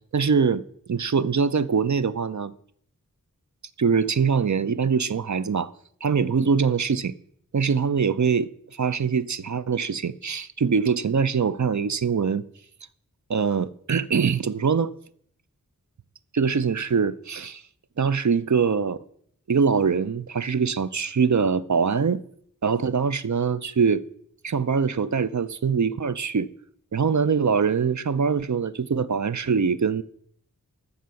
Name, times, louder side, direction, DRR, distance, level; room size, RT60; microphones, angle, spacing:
voice 1, 0.1-0.6 0.9-2.5 3.8-5.7 6.0-7.1 7.5-12.4 13.3-14.9 16.3-17.6 18.0-19.0 19.5-22.2 22.6-24.0 24.4-26.5 26.9-30.0, right 6 dB, 55° right, 0.6 m, -23 dB
14.0 x 5.7 x 7.0 m
wide cardioid pair, 60°, 35 cm